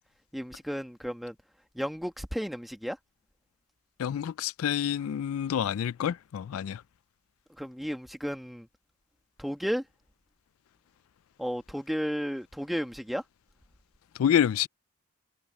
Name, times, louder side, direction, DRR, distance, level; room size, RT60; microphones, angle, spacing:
voice 1, 0.3-1.4 1.7-3.0 7.6-8.7 9.4-9.8 11.4-13.2, equal, ahead, 1.4 m, -33 dB
voice 2, 4.0-6.8 14.2-14.7, left 9 dB, 80° left, 0.3 m, -27 dB
head